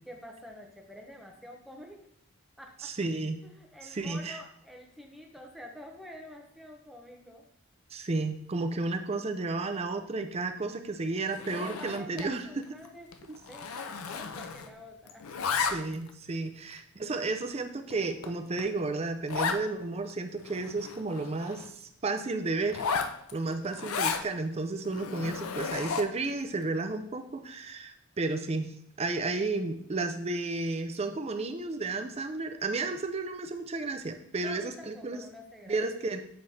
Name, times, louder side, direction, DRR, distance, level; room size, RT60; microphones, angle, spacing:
voice 1, 0.0-2.1 2.6-2.9 3.4-7.5 11.4-13.1 13.4-15.7 23.5-23.7 34.4-35.8, left 1 dB, ahead, 1 dB, 0.8 m, -48 dB
voice 2, 2.8-3.4 3.8-4.4 7.9-12.6 13.3-13.4 15.7-22.8 23.3-35.2 35.7-36.2, right 3 dB, 30° right, 7 dB, 0.4 m, -32 dB
Zipper (clothing), 11.3-12.3 12.6-12.9 13.1-14.8 15.1-16.1 16.7-16.8 17.4-17.5 17.9-18.0 18.2-18.3 18.6-18.7 19.3-19.6 20.1-20.2 20.4-21.7 22.7-24.3 24.9-26.3, left 5 dB, 80° left, 0.5 m, -34 dB
7.6 x 3.2 x 4.1 m, 0.72 s
head